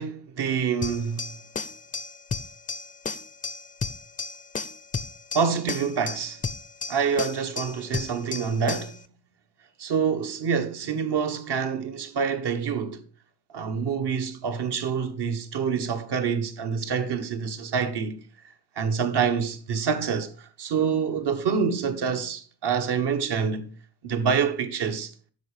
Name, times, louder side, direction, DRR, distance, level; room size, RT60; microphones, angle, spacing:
voice 1, 0.0-1.3 5.3-6.4 6.9-9.0 9.8-13.0 13.5-18.2 18.8-23.7 24.0-25.1, right 6 dB, 55° right, 1.5 m, -26 dB
sound 1, 0.8-9.0, left 5 dB, 15° left, 0.5 m, -34 dB
10.0 x 6.6 x 5.0 m
cardioid pair, 95°, 49 cm